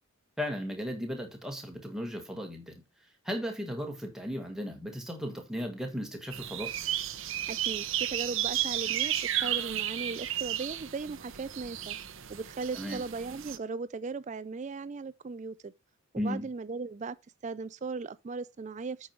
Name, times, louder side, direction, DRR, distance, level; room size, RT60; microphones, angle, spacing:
voice 1, 0.4-2.8 3.2-6.7 12.7-13.0 16.2-16.5, equal, ahead, 1.6 m, -36 dB
sound 1, 6.3-13.6, right 11 dB, 60° right, 0.7 m, -33 dB
voice 2, 7.5-12.0 12.3-15.7 16.1-17.2 17.4-19.1, right 4 dB, 30° right, 0.3 m, -37 dB
8.6 x 5.4 x 4.5 m
head